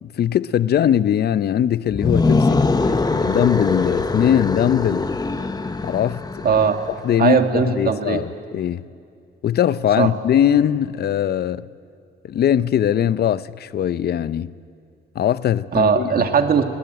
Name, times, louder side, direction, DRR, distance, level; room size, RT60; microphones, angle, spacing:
voice 1, 0.0-5.1 5.8-6.2 7.0-8.8 9.4-11.7 12.2-14.5 15.2-16.1, left 10 dB, 55° left, 0.6 m, -20 dB
sound 1, 1.9-6.9, left 3 dB, 20° left, 1.0 m, -22 dB
voice 2, 6.4-6.8 7.2-8.2 10.0-10.1 15.7-16.6, right 6 dB, 50° right, 1.9 m, -18 dB
19.5 x 19.0 x 9.2 m
cardioid pair, 90°, 20 cm